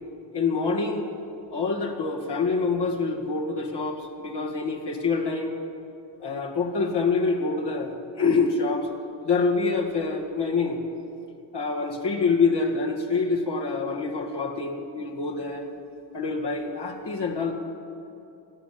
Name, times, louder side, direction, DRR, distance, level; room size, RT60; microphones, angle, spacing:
voice 1, 0.3-1.1 1.5-5.5 6.2-8.9 9.2-10.8 11.5-15.7 16.1-17.5, left 4 dB, 60° left, 0 dB, 2.1 m, -26 dB
14.5 x 8.5 x 8.4 m, 2.7 s
cardioid pair, 50°, 46 cm